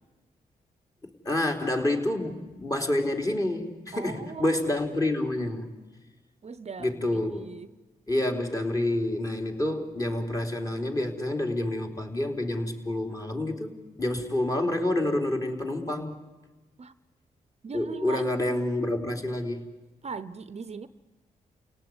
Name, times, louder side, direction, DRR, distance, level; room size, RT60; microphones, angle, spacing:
voice 1, 1.0-5.7 6.8-7.4 8.1-16.2 17.7-19.7, left 1 dB, 25° left, 4.1 m, -28 dB
voice 2, 3.9-4.6 6.4-7.7 16.8-17.0 17.6-18.2 20.0-20.9, right 5 dB, 45° right, 0.9 m, -39 dB
30.0 x 18.0 x 9.7 m
cardioid pair, 60°, 15 cm